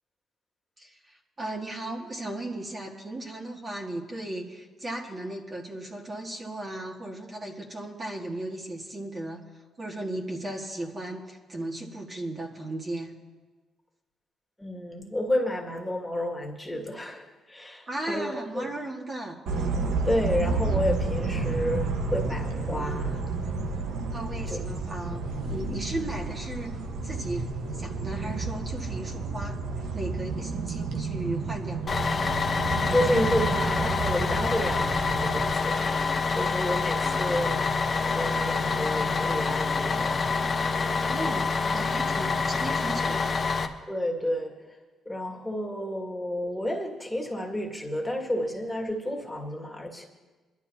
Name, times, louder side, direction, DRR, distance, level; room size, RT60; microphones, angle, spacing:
voice 1, 0.8-9.4 9.8-13.1 17.9-19.4 24.1-26.8 27.0-29.6 29.9-31.8 41.1-43.4, right 1 dB, 30° right, -1 dB, 1.8 m, -36 dB
voice 2, 14.6-18.7 20.0-23.2 24.5-24.6 32.9-40.2 41.2-41.4 43.9-44.8 45.1-50.1, left 1 dB, 10° left, -1 dB, 2.0 m, -31 dB
sound 1, 19.5-35.5, right 4 dB, 85° right, 1.2 m, -31 dB
sound 2, 31.7-43.2, right 1 dB, 5° right, 1.2 m, -43 dB
Bus, 31.9-43.7, left 4 dB, 35° left, 0.9 m, -27 dB
22.5 x 12.0 x 2.8 m, 1.3 s
cardioid pair, 90°, 0 cm